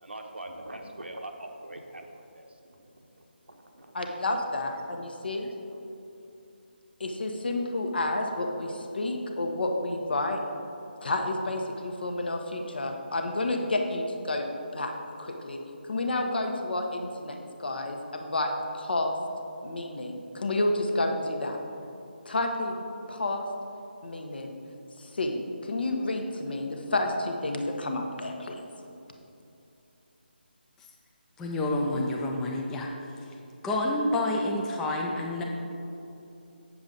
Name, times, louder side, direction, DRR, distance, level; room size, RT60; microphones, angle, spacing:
voice 1, 0.0-4.2 5.4-5.8, right 1 dB, 85° right, 3 dB, 1.0 m, -44 dB
voice 2, 3.9-5.5 7.0-10.4 11.0-14.5 14.7-14.9 15.2-19.1 19.6-21.6 22.3-22.8 23.1-23.5 24.0-24.5 25.0-28.7, left 2 dB, 65° left, 3 dB, 1.0 m, -30 dB
voice 3, 31.4-32.9 33.6-35.4, left 1 dB, 5° left, -1 dB, 0.4 m, -28 dB
7.7 x 7.0 x 3.9 m, 2.8 s
figure-of-eight pair, 155°, 6 cm